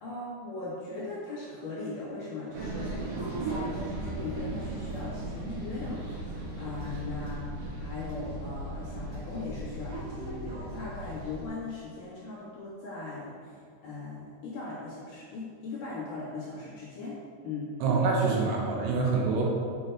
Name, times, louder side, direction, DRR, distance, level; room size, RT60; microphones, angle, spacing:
voice 1, 0.0-13.5 13.8-17.2 17.4-17.7, left 3 dB, 65° left, -7 dB, 2.3 m, -39 dB
sound 1, 2.5-11.4, right 1 dB, 55° right, 2.6 m, -37 dB
voice 2, 17.8-19.5, right 4 dB, 75° right, -2 dB, 3.0 m, -26 dB
7.7 x 6.2 x 4.5 m, 2.3 s
omnidirectional pair, 5.2 m